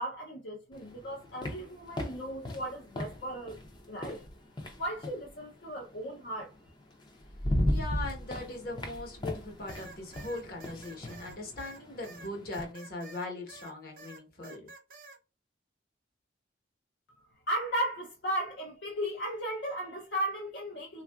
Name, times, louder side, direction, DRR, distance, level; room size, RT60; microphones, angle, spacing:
voice 1, 0.0-3.6 3.9-4.2 4.8-6.5 17.5-21.0, right 1 dB, 70° left, 0.6 m, -35 dB
sound 1, 0.7-5.3 6.6-6.7 7.1-12.7, left 1 dB, 25° left, 0.5 m, -36 dB
voice 2, 7.7-14.7, left 2 dB, 50° left, 1.0 m, -40 dB
sound 2, 9.7-13.7 14.0-15.2, right 3 dB, 50° right, 0.6 m, -50 dB
3.4 x 2.4 x 2.3 m
head